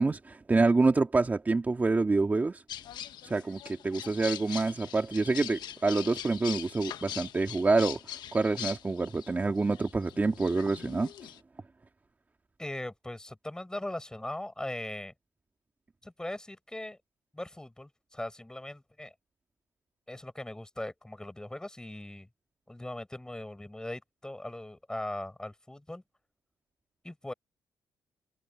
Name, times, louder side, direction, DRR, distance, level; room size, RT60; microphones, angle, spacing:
voice 1, 0.0-2.6 3.2-8.0 8.3-11.1, right 3 dB, 25° right, 2.2 m, -27 dB
sound 1, 2.7-11.4, left 11 dB, 80° left, 1.4 m, -42 dB
voice 2, 12.6-15.1 16.0-17.0 17.3-19.1 20.1-22.3 22.7-26.0 27.0-27.3, left 1 dB, 10° left, 7.7 m, -39 dB
cardioid pair, 100°, 7 cm